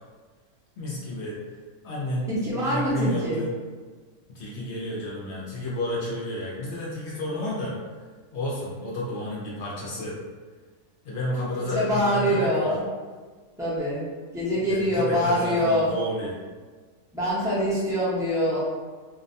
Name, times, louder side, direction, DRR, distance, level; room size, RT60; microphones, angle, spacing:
voice 1, 0.8-1.4 1.8-2.3 2.6-3.5 4.3-7.7 8.3-10.2 11.0-12.7 14.6-16.3, left 1 dB, 65° left, -4 dB, 0.7 m, -31 dB
voice 2, 2.3-3.4 11.5-12.8 13.6-14.0 14.3-15.9 17.1-18.6, equal, 5° right, -10 dB, 0.5 m, -24 dB
2.5 x 2.1 x 2.5 m, 1.5 s
omnidirectional pair, 1.5 m